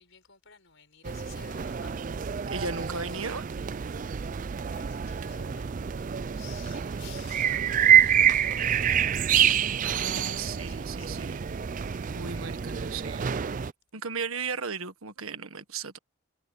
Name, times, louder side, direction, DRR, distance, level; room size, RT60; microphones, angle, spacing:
voice 1, 0.0-3.2 4.7-8.8 9.4-11.4, left 7 dB, 60° left, 5.6 m, -53 dB
sound 1, 1.0-13.7, right 9 dB, 35° right, 0.3 m, -27 dB
voice 2, 2.5-3.4 9.8-11.5 11.8-13.4 13.9-16.0, right 4 dB, 75° right, 1.6 m, -36 dB
head